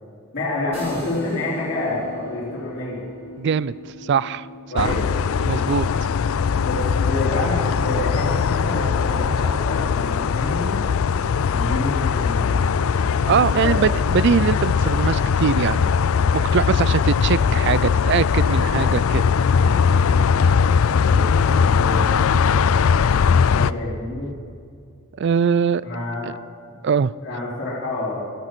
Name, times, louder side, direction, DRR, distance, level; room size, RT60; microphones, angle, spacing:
voice 1, 0.3-3.0 4.7-5.0 6.6-10.8 11.5-12.7 13.6-13.8 20.9-22.1 23.2-24.3 25.8-26.4 27.2-28.3, left 2 dB, 45° left, -10 dB, 3.8 m, -28 dB
sound 1, 0.7-10.3, left 1 dB, 30° right, 4.4 m, -41 dB
voice 2, 3.4-3.7 4.0-4.5 4.7-5.0 5.4-5.9 13.3-16.0 16.3-19.2 25.2-25.8 26.8-27.1, right 6 dB, 55° right, 19 dB, 0.3 m, -21 dB
sound 2, 4.8-23.7, left 6 dB, 75° left, 0.4 m, -20 dB
15.5 x 13.0 x 6.0 m, 2.3 s
head